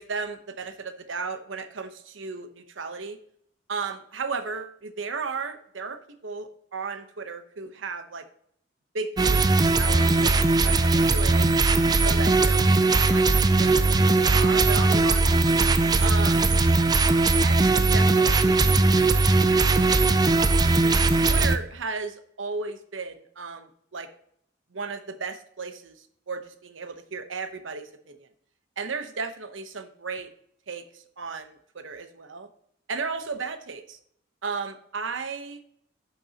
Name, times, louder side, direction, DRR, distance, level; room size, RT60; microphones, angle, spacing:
voice 1, 0.0-3.2 3.7-8.2 8.9-11.5 12.0-15.3 16.0-16.5 17.4-18.6 19.5-20.9 21.3-24.1 24.7-28.3 28.8-30.3 30.7-32.5 32.9-34.0 34.4-35.6, right 4 dB, 80° right, 8 dB, 0.9 m, -35 dB
sound 1, 9.2-21.6, right 3 dB, 20° right, 0.4 m, -20 dB
10.5 x 7.0 x 2.9 m, 0.68 s
head